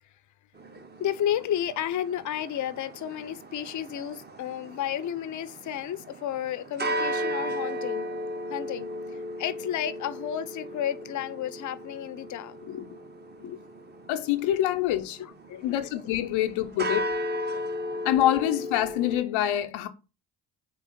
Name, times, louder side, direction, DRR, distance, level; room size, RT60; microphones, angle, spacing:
sound 1, 0.6-19.2, equal, 20° right, 0.7 m, -36 dB
voice 1, 1.0-8.1 8.5-8.9 9.4-13.0 13.4-13.6 15.2-15.8 16.8-16.9 17.5-17.6, left 10 dB, 40° left, 0.5 m, -32 dB
voice 2, 14.1-15.2 15.6-17.1 18.0-19.9, left 12 dB, 85° left, 0.6 m, -25 dB
3.8 x 3.0 x 4.2 m
supercardioid pair, 45°, 46 cm